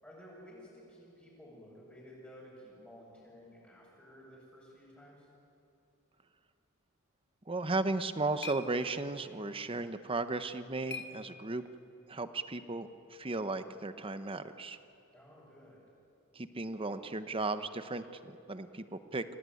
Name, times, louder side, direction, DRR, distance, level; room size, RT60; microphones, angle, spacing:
voice 1, 0.0-5.3 15.1-15.8, equal, 10° left, -8 dB, 6.4 m, -54 dB
voice 2, 7.5-11.6 12.1-14.8 16.4-19.2, right 3 dB, 25° right, 10 dB, 0.9 m, -35 dB
sound 1, 7.7-11.9, left 4 dB, 50° left, 1.6 m, -49 dB
26.5 x 17.5 x 9.6 m, 2.8 s
head